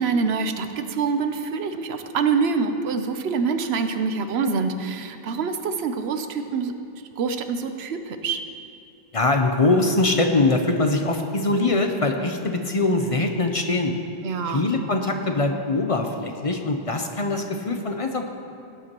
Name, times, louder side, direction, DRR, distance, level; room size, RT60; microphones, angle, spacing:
voice 1, 0.0-6.7 7.2-8.4 14.2-14.7, right 5 dB, 90° right, 8 dB, 1.0 m, -25 dB
voice 2, 9.1-13.9 14.5-18.3, left 2 dB, 40° left, 4 dB, 0.6 m, -22 dB
16.5 x 9.5 x 3.0 m, 2.7 s
omnidirectional pair, 1.0 m